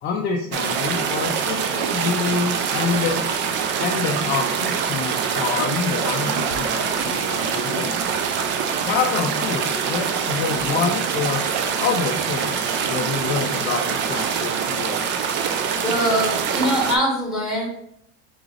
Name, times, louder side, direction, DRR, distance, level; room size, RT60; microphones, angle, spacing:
voice 1, 0.0-3.2 3.8-7.9 8.8-11.4 11.8-15.0, left 5 dB, 30° left, 1 dB, 0.5 m, -26 dB
sound 1, 0.5-17.0, right 7 dB, 35° right, 0.4 m, -24 dB
voice 2, 15.8-17.7, equal, ahead, -3 dB, 1.7 m, -22 dB
3.9 x 3.7 x 3.2 m, 0.71 s
supercardioid pair, 145°, 35 cm